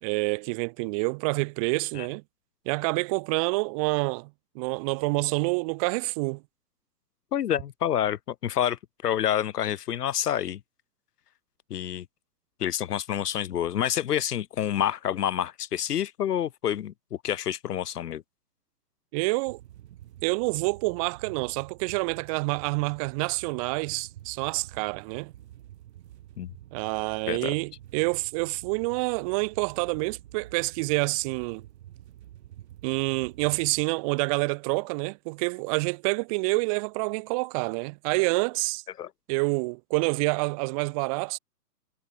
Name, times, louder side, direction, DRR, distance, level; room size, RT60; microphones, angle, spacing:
voice 1, 0.0-2.2 2.6-4.3 4.5-6.4 19.1-19.6 20.2-25.3 26.7-31.6 32.8-38.8 39.3-41.4, right 29 dB, 20° right, 1.2 m, -27 dB
voice 2, 7.3-10.6 11.7-12.1 12.6-18.2 26.4-26.5 27.3-27.5 39.0-39.1, left 10 dB, 75° left, 0.7 m, -28 dB
sound 1, 19.4-33.8, right 12 dB, 45° right, 2.3 m, -49 dB
hypercardioid pair, 140°, 48 cm